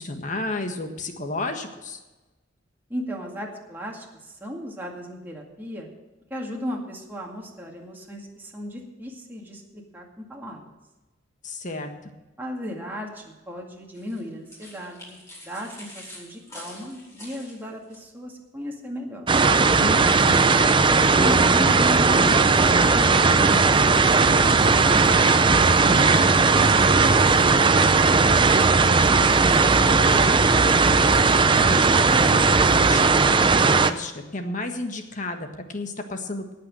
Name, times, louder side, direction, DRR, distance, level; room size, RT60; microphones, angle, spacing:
voice 1, 0.0-2.0 11.4-12.1 19.8-20.4 29.3-30.4 31.4-31.8 32.1-36.5, left 2 dB, 40° left, 5 dB, 1.5 m, -33 dB
voice 2, 2.9-5.9 6.3-10.7 12.4-15.2 15.4-19.3 20.9-24.5 24.8-28.6, equal, 10° right, -1 dB, 2.1 m, -36 dB
sound 1, 13.9-18.0, left 1 dB, 15° left, 4.8 m, -45 dB
sound 2, 19.3-33.9, right 4 dB, 25° right, 0.5 m, -17 dB
18.0 x 6.0 x 7.6 m, 1.1 s
head